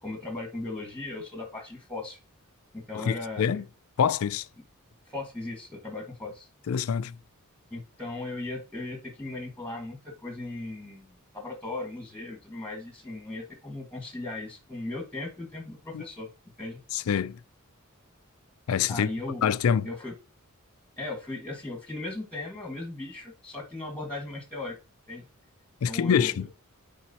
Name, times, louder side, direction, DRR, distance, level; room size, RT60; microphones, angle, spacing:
voice 1, 0.0-2.2 2.7-3.6 5.1-6.5 7.7-11.1 11.3-16.3 16.6-16.8 18.9-19.4 19.8-20.1 21.0-24.8 25.1-25.2 25.8-26.4, left 2 dB, 5° left, 1.6 m, -37 dB
voice 2, 2.9-3.6 4.0-4.5 6.7-7.2 15.9-16.0 16.9-17.4 18.7-19.1 19.4-19.9 25.8-26.5, left 7 dB, 75° left, 0.4 m, -25 dB
9.0 x 4.2 x 2.8 m
head